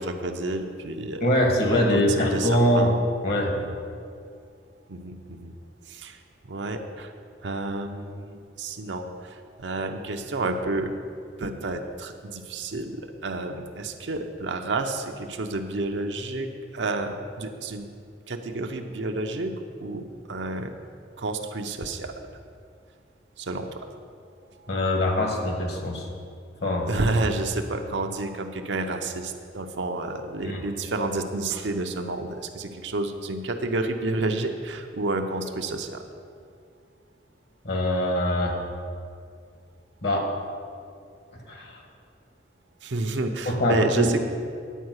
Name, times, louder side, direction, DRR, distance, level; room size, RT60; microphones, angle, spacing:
voice 1, 0.0-1.3 1.7-3.0 3.5-3.8 4.9-5.5 5.9-6.2 6.4-7.1 7.4-10.9 11.4-17.9 18.3-19.5 19.8-20.7 21.2-22.1 23.4-23.9 26.9-36.0 42.8-44.2, right 2 dB, 80° right, 5 dB, 0.8 m, -30 dB
voice 2, 1.2-2.9 3.2-3.5 24.7-26.1 26.6-26.9 30.4-30.6 37.6-38.6 40.0-40.3 41.5-41.8 43.4-44.2, left 1 dB, 60° left, 1 dB, 1.6 m, -23 dB
10.0 x 4.7 x 8.0 m, 2.3 s
head